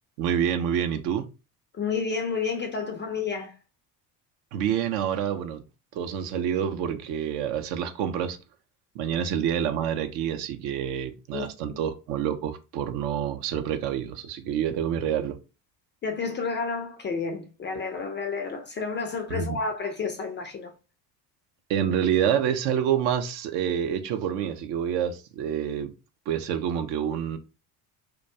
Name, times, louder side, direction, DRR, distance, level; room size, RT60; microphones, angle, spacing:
voice 1, 0.2-1.3 4.5-5.6 5.9-8.4 9.0-15.4 19.3-19.6 21.7-25.9 26.3-27.4, right 9 dB, 60° right, 0.5 m, -27 dB
voice 2, 1.7-3.6 11.3-11.8 16.0-20.7, left 5 dB, 25° left, 0.3 m, -30 dB
2.2 x 2.2 x 2.6 m
hypercardioid pair, 65°, 50 cm